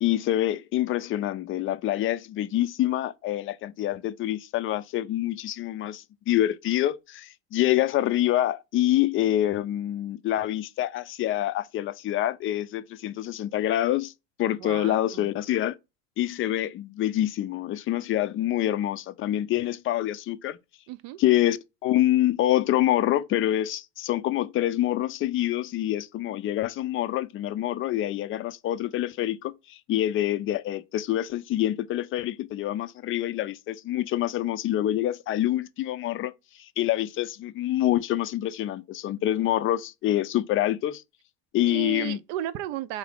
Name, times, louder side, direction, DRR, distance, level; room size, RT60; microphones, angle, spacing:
voice 1, 0.0-14.1 14.4-15.8 16.2-20.6 21.2-41.0 41.5-42.2, left 13 dB, 40° left, 0.4 m, -26 dB
voice 2, 14.6-15.3 20.9-21.2 41.7-43.0, right 13 dB, 60° right, 0.5 m, -34 dB
3.7 x 2.7 x 3.4 m
hypercardioid pair, 85°, 35 cm